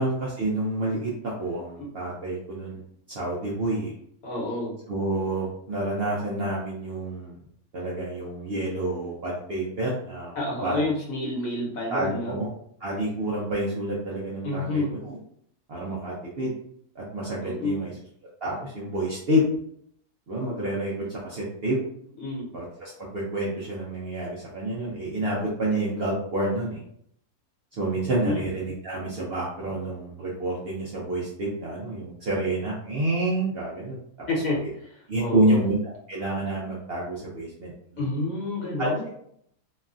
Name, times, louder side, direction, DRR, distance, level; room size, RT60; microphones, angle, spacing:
voice 1, 0.0-2.8 3.1-3.9 4.9-7.4 7.7-10.3 10.6-10.8 11.9-12.5 12.8-15.2 15.7-16.5 17.0-17.9 18.4-19.4 20.3-21.8 22.5-26.8 27.8-34.0 35.1-35.8 36.1-38.1 38.8-39.1, right 1 dB, 60° right, -5 dB, 0.6 m, -28 dB
voice 2, 4.2-4.8 10.4-12.4 14.4-14.9 17.4-17.9 22.2-22.5 27.9-28.4 34.3-35.6 38.0-39.0, left 2 dB, 70° left, -3 dB, 1.3 m, -29 dB
3.1 x 2.3 x 2.4 m, 0.69 s
omnidirectional pair, 1.6 m